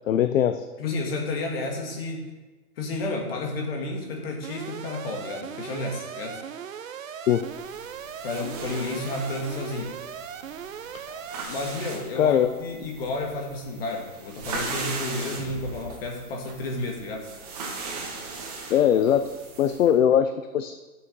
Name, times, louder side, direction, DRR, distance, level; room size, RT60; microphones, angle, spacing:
voice 1, 0.1-0.6 7.3-7.4 11.1-11.2 12.2-12.5 18.7-20.7, left 9 dB, 60° left, 9 dB, 0.6 m, -21 dB
voice 2, 0.8-2.3 2.8-6.4 8.2-9.9 11.5-17.3, left 2 dB, 40° left, 1 dB, 2.0 m, -31 dB
Alarm, 4.4-11.4, right 8 dB, 60° right, 0.8 m, -38 dB
sound 1, 7.4-19.9, right 3 dB, 25° right, 1.5 m, -38 dB
11.0 x 7.2 x 5.3 m, 1.2 s
hypercardioid pair, 175°, 45 cm